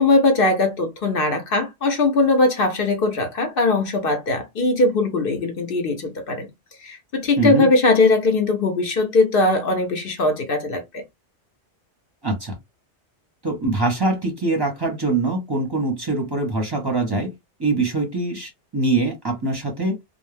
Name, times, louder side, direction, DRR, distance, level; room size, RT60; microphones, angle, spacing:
voice 1, 0.0-6.5 6.8-11.0, left 2 dB, 55° left, 0.8 m, -20 dB
voice 2, 7.4-7.7 12.2-12.6 13.4-17.3 17.6-20.0, right 2 dB, 25° right, 0.7 m, -23 dB
2.3 x 2.0 x 3.2 m
omnidirectional pair, 1.2 m